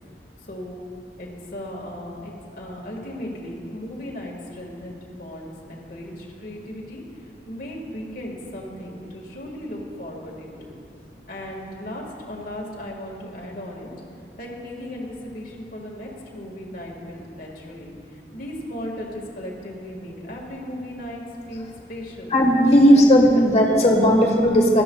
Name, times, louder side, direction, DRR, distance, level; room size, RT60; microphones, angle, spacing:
voice 1, 0.5-0.8 1.2-7.0 7.5-10.8 11.3-13.9 14.4-21.2 21.5-22.4 22.7-23.0 23.3-23.9 24.1-24.2, left 1 dB, 50° left, -1 dB, 1.7 m, -36 dB
voice 2, 22.3-24.8, equal, 35° left, 0 dB, 1.4 m, -15 dB
17.5 x 12.5 x 2.3 m, 2.5 s
head